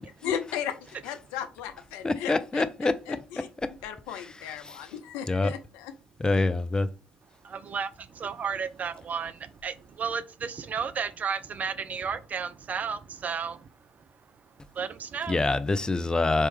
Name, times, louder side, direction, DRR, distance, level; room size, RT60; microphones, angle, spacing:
voice 1, 0.2-0.8 1.0-2.6 3.1-3.5 3.8-5.9, left 9 dB, 65° left, 0.6 m, -35 dB
voice 2, 2.0-3.7 4.1-4.9 5.3-5.5 6.2-6.9 15.3-16.5, left 2 dB, 20° left, 0.5 m, -27 dB
voice 3, 7.4-14.1 14.4-15.4, right 6 dB, 40° right, 0.5 m, -33 dB
4.3 x 3.1 x 3.4 m
figure-of-eight pair, 50°, 4 cm